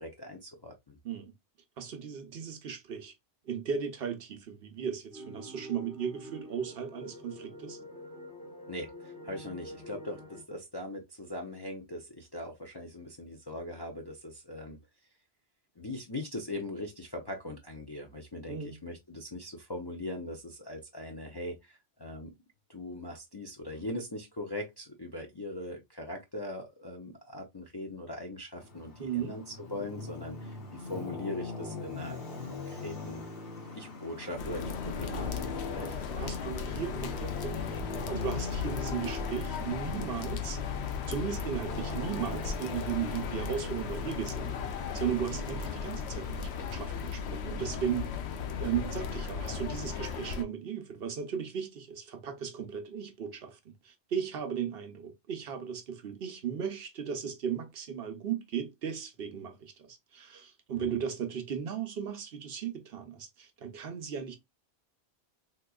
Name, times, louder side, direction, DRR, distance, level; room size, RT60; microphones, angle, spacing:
voice 1, 0.0-1.0 8.7-14.8 15.8-22.3 22.7-33.2 33.7-36.0 45.3-45.4 60.7-60.9, left 1 dB, 35° left, 0.4 m, -41 dB
voice 2, 1.8-3.1 3.5-7.8 18.5-18.8 29.0-29.4 36.2-40.6 41.1-44.6 44.9-48.2 48.6-53.6 53.8-64.4, right 8 dB, 65° right, 0.8 m, -36 dB
sound 1, 5.1-10.4, equal, 5° left, 1.2 m, -46 dB
Traffic noise roadway noise, 28.6-47.1, left 4 dB, 60° left, 1.2 m, -41 dB
sound 2, 34.4-50.4, left 6 dB, 75° left, 0.9 m, -36 dB
3.5 x 2.9 x 2.2 m
omnidirectional pair, 1.1 m